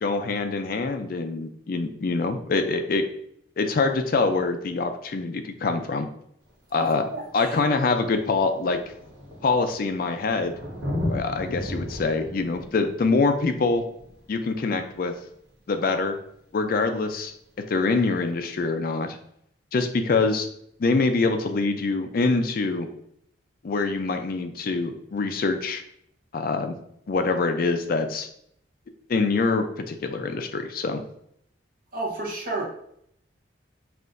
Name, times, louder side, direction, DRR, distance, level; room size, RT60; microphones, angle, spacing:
voice 1, 0.0-3.1 3.6-6.1 6.7-7.0 7.3-8.8 9.4-10.5 11.1-13.8 14.3-15.1 15.7-16.2 16.5-17.3 17.7-19.2 19.7-20.5 20.8-22.9 23.6-25.8 26.3-26.8 27.1-28.3 29.1-31.0, left 3 dB, 50° left, 7 dB, 0.4 m, -24 dB
Thunder, 6.5-6.6 7.5-7.6 7.8-15.2 16.8-16.9, left 1 dB, 75° right, 1.0 m, -35 dB
voice 2, 6.8-7.5 31.9-32.6, right 2 dB, 50° right, -3 dB, 1.0 m, -31 dB
5.6 x 2.5 x 2.5 m, 0.70 s
head